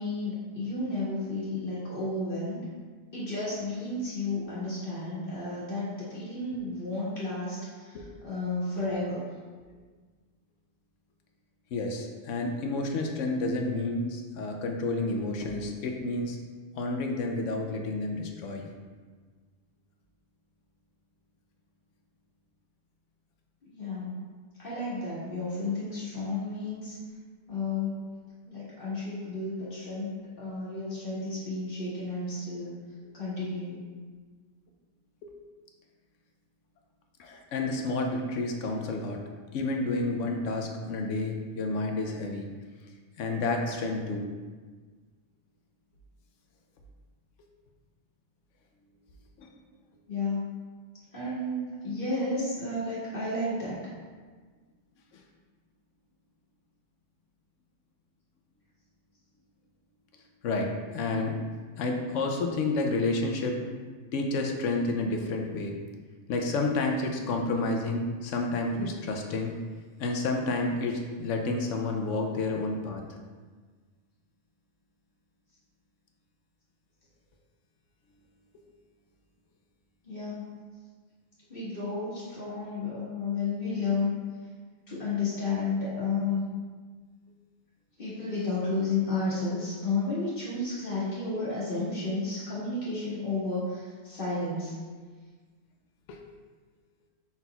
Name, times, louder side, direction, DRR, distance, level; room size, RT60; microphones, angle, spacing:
voice 1, 0.0-2.6 3.1-9.2 23.7-24.2 24.6-27.0 27.5-28.0 28.5-32.7 33.1-33.8 50.1-50.5 51.1-53.8 80.0-80.5 81.5-84.1 84.9-86.4 88.0-94.7, left 3 dB, 45° left, -9 dB, 1.6 m, -32 dB
voice 2, 11.7-16.4 16.7-18.7 35.2-35.3 37.2-39.2 39.5-42.5 43.2-44.3 49.4-49.5 60.4-61.4 61.8-63.6 64.1-65.7 66.3-69.6 70.0-73.0 96.1-96.2, left 2 dB, 75° left, 2 dB, 0.9 m, -30 dB
5.6 x 4.1 x 2.2 m, 1.5 s
omnidirectional pair, 1.3 m